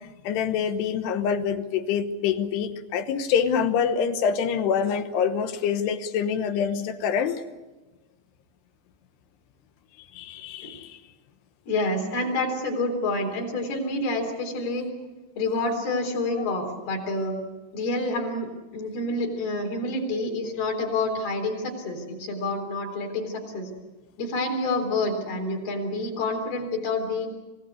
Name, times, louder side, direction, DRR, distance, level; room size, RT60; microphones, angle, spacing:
voice 1, 0.2-7.4 10.1-11.0, left 7 dB, 70° left, 10 dB, 2.9 m, -26 dB
voice 2, 11.7-14.9 15.4-17.3 17.7-18.5 18.7-23.7 24.2-27.3, left 2 dB, 55° left, 2 dB, 5.5 m, -28 dB
27.0 x 17.0 x 8.3 m, 1.2 s
omnidirectional pair, 5.4 m